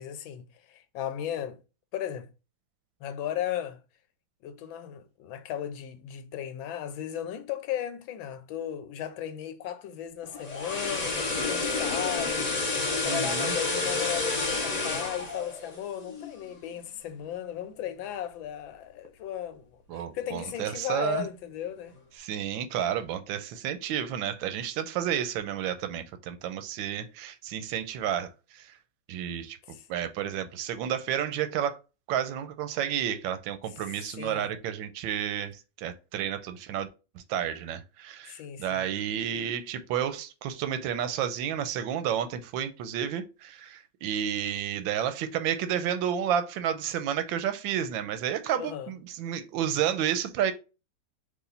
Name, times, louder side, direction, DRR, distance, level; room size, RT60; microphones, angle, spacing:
voice 1, 0.0-1.6 1.9-2.3 3.0-3.8 4.4-12.5 12.9-21.9 29.7-29.9 34.2-34.5 38.3-38.8 48.5-48.9, left 10 dB, 85° left, 1.5 m, -36 dB
sound 1, 10.2-16.4 16.8-17.0, left 3 dB, 35° left, 0.6 m, -30 dB
voice 2, 13.0-13.5 19.9-21.3 22.2-28.8 29.1-29.6 29.9-31.8 32.1-36.9 37.1-50.5, right 9 dB, 85° right, 1.4 m, -31 dB
4.9 x 2.6 x 3.9 m
omnidirectional pair, 2.1 m